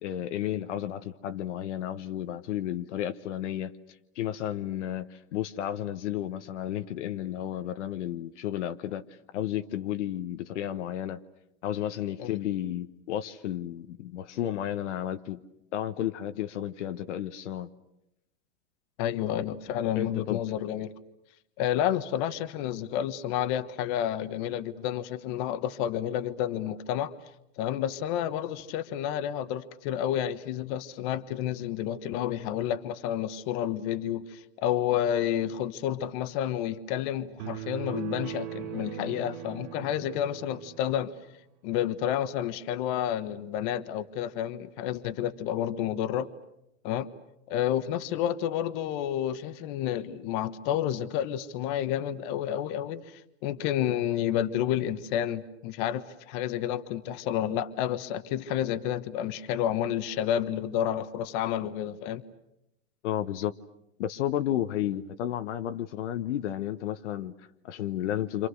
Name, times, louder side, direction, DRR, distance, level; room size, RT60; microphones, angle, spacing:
voice 1, 0.0-3.7 4.1-9.0 9.3-11.2 11.6-15.4 15.7-17.7 19.9-20.4 63.0-63.5 64.0-68.5, left 11 dB, 65° left, 1.2 m, -32 dB
voice 2, 19.0-20.9 21.6-27.1 27.6-41.1 41.6-46.3 46.8-47.1 47.5-62.2, left 10 dB, 40° left, 1.4 m, -30 dB
sound 1, 37.4-40.9, right 13 dB, 40° right, 1.5 m, -39 dB
29.0 x 27.0 x 6.5 m
supercardioid pair, 150°, 38 cm